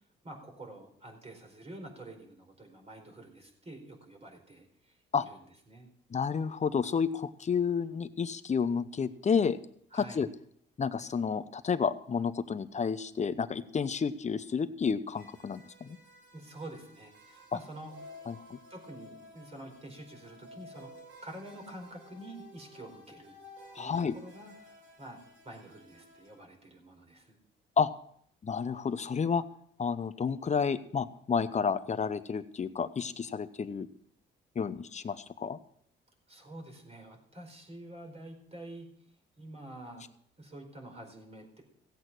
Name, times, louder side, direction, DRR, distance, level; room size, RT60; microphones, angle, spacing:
voice 1, 0.2-5.9 9.9-10.2 16.3-17.9 18.7-20.9 21.2-23.3 23.7-24.5 25.0-27.4 36.3-38.9 39.4-40.0 40.4-41.6, right 1 dB, 30° right, 3 dB, 4.6 m, -48 dB
voice 2, 6.1-9.6 9.9-10.3 10.8-16.0 18.3-18.6 23.8-24.2 27.8-27.9 28.4-29.4 29.8-33.9 34.6-35.6, left 6 dB, 35° left, 12 dB, 0.9 m, -30 dB
sound 1, 15.1-26.4, left 1 dB, 80° right, 6.7 m, -54 dB
16.5 x 8.2 x 6.1 m, 0.65 s
cardioid pair, 90°, 20 cm